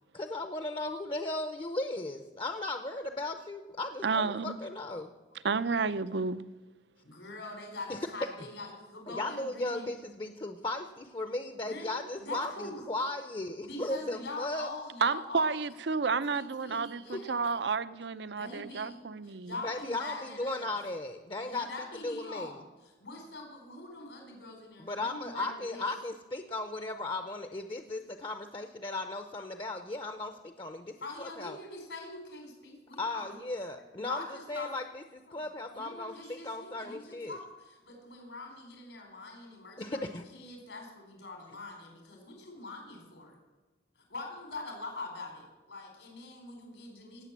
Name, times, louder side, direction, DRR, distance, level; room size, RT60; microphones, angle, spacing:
voice 1, 0.1-5.1 7.9-8.0 9.1-14.7 16.7-16.8 17.1-17.2 19.6-21.7 22.0-22.5 24.9-30.9 31.2-31.6 33.0-35.0 35.3-37.4 39.8-40.3, left 2 dB, 30° left, 0.7 m, -36 dB
voice 2, 4.0-4.6 5.4-6.4 15.0-19.5, right 4 dB, 70° right, 0.6 m, -31 dB
voice 3, 7.0-9.9 11.6-12.8 13.6-15.5 16.3-17.5 18.3-20.7 21.4-25.9 31.0-33.4 33.9-34.8 35.3-35.5 35.7-43.4 43.9-47.2, left 2 dB, 85° left, 4.3 m, -44 dB
18.0 x 7.7 x 7.4 m
head